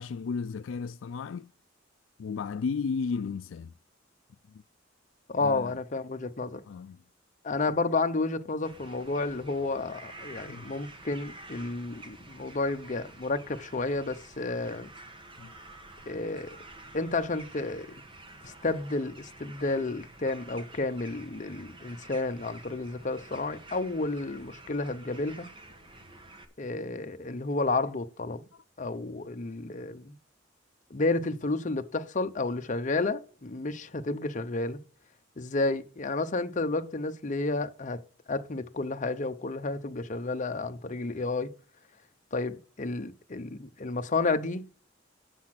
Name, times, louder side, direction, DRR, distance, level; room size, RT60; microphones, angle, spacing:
voice 1, 0.0-1.5 2.2-3.7 4.5-4.6 5.4-5.8 6.7-7.0 7.7-7.8 10.5-10.8 15.4-15.5 28.5-28.6, left 5 dB, 75° left, 0.4 m, -34 dB
voice 2, 5.3-6.6 7.4-14.9 16.1-16.6 16.9-17.9 18.4-25.5 26.6-28.4 28.8-30.2 30.9-34.8 35.4-38.0 38.3-41.5 42.3-44.6, left 3 dB, 40° left, 0.8 m, -31 dB
sound 1, 8.6-26.4, right 2 dB, 25° right, 1.2 m, -49 dB
8.2 x 7.4 x 5.9 m
head